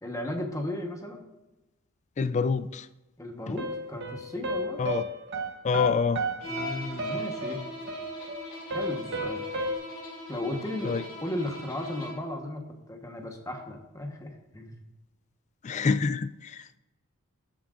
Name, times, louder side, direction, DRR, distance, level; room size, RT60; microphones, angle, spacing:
voice 1, 0.0-1.2 3.2-4.8 6.4-7.7 8.7-9.4 10.3-14.8, left 1 dB, 15° left, 3 dB, 1.1 m, -35 dB
voice 2, 2.2-2.9 4.8-5.0 5.6-6.2 10.8-11.0 15.6-16.7, left 5 dB, 30° left, 13 dB, 0.3 m, -26 dB
sound 1, 3.6-9.8, equal, 50° right, 1.0 m, -33 dB
Bowed string instrument, 6.4-12.3, equal, 80° left, 2.4 m, -40 dB
14.0 x 7.5 x 2.5 m, 1.0 s
head